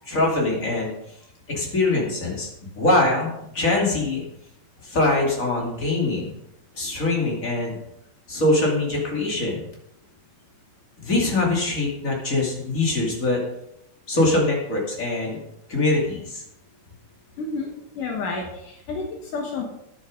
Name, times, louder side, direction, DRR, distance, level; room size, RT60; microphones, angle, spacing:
voice 1, 0.1-0.9 1.5-2.5 2.7-4.2 4.8-6.3 6.7-7.8 8.3-9.7 11.0-13.4 14.1-15.4 15.7-16.4, left 2 dB, 25° left, -2 dB, 2.5 m, -23 dB
voice 2, 17.4-17.7 18.0-19.6, left 4 dB, 70° left, 1 dB, 2.8 m, -30 dB
10.5 x 8.5 x 5.1 m, 0.80 s
omnidirectional pair, 3.9 m